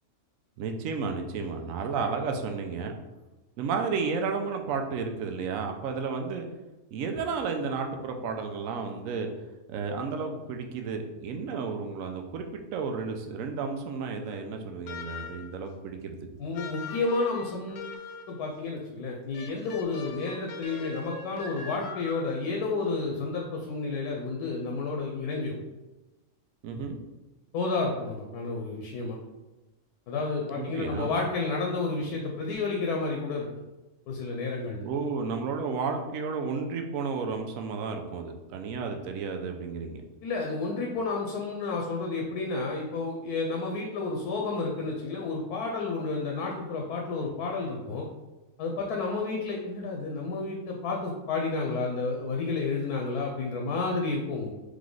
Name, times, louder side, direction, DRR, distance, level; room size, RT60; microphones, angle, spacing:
voice 1, 0.6-2.9 3.6-6.5 6.9-9.3 9.7-16.2 26.6-27.0 30.6-31.1 34.8-40.0, right 5 dB, 70° right, 4 dB, 0.9 m, -32 dB
sound 1, 14.9-15.6 16.5-18.4 19.3-22.5, left 5 dB, 70° left, 0.9 m, -41 dB
voice 2, 16.4-17.9 18.3-25.6 27.5-29.2 30.1-33.5 34.1-34.8 40.2-48.1 48.6-54.5, left 3 dB, 85° left, 0 dB, 1.2 m, -31 dB
3.7 x 3.2 x 3.8 m, 1.1 s
omnidirectional pair, 1.6 m